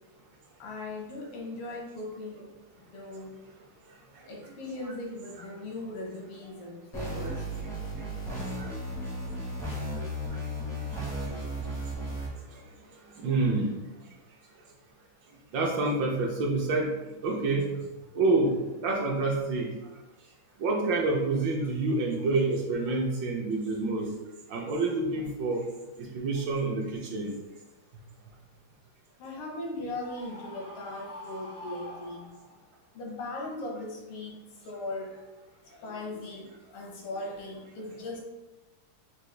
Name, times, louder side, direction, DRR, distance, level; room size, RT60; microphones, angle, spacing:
voice 1, 0.6-2.5 2.9-3.3 4.3-7.3 29.2-32.3 33.0-34.3 34.7-35.1 35.8-36.5 36.7-38.2, left 2 dB, 85° left, -1 dB, 1.8 m, -38 dB
sound 1, 6.9-12.3, equal, 5° left, 0.4 m, -35 dB
voice 2, 13.2-13.7 15.5-16.9 17.2-17.7 18.1-18.5 18.8-19.7 20.6-24.1 24.5-25.6 26.0-26.8 27.1-27.3, right 3 dB, 70° right, -1 dB, 1.2 m, -27 dB
Screaming, 30.0-32.7, left 1 dB, 65° left, 0.7 m, -45 dB
5.3 x 2.3 x 3.1 m, 1.1 s
omnidirectional pair, 2.3 m